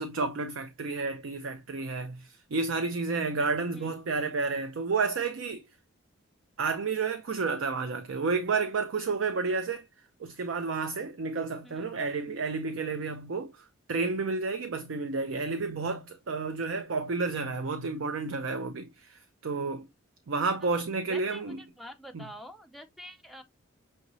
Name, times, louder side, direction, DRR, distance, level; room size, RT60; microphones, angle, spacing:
voice 1, 0.0-5.6 6.6-9.8 10.2-19.9 20.3-21.6 22.1-22.2, right 4 dB, 60° right, 0.5 m, -31 dB
voice 2, 21.1-23.4, equal, ahead, 0.5 m, -46 dB
6.3 x 2.9 x 2.6 m
head